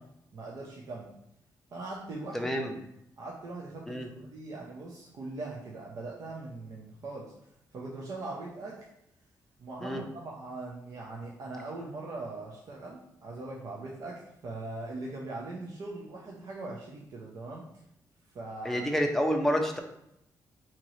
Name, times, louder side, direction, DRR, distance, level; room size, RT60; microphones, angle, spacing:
voice 1, 0.3-1.1 1.7-2.8 3.2-7.3 7.7-8.9 9.6-17.7 18.3-19.0, right 2 dB, 55° right, -3 dB, 0.6 m, -41 dB
voice 2, 2.3-2.7 3.9-4.1 9.8-10.0 18.6-19.8, equal, 5° left, 2 dB, 0.5 m, -28 dB
3.7 x 2.9 x 3.1 m, 0.80 s
cardioid pair, 125°, 7 cm